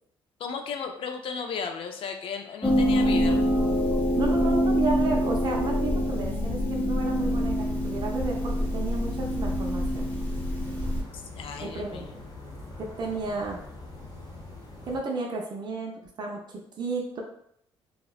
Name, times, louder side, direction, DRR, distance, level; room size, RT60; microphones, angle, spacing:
voice 1, 0.4-3.4 11.1-12.2, left 6 dB, 60° left, 5 dB, 0.4 m, -35 dB
sound 1, 2.6-11.0, equal, 15° left, 0.7 m, -25 dB
voice 2, 4.2-10.1 11.6-12.1 12.8-13.6 14.9-17.2, right 3 dB, 45° right, 0 dB, 0.5 m, -33 dB
sound 2, 7.1-15.0, left 2 dB, 40° left, 0.9 m, -43 dB
2.8 x 2.0 x 2.3 m, 0.71 s
supercardioid pair, 65°, 10 cm